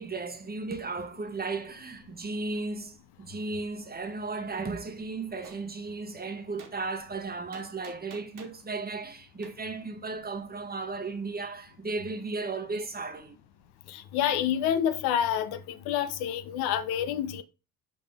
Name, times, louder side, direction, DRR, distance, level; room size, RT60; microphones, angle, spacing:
voice 1, 0.0-13.4, right 3 dB, 20° right, 1.2 m, -35 dB
Gunshot gunfire, 5.4-5.6 6.6-6.7 7.5-8.6 9.4-9.5, right 6 dB, 50° right, 1.7 m, -48 dB
voice 2, 13.9-17.4, left 9 dB, 65° left, 0.9 m, -28 dB
5.6 x 5.1 x 3.5 m
hypercardioid pair, 55°, 41 cm